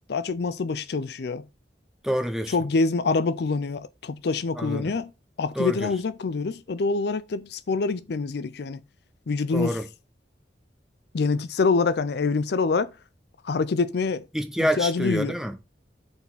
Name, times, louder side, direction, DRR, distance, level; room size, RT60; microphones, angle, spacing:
voice 1, 0.1-1.4 2.5-5.1 5.4-8.8 9.3-9.8 11.1-12.9 13.4-14.2 14.8-15.3, left 4 dB, 60° left, 0.5 m, -25 dB
voice 2, 2.0-2.6 4.5-4.9 5.5-5.9 9.5-9.9 14.3-15.6, equal, 5° right, 1.0 m, -27 dB
5.6 x 4.2 x 6.2 m
head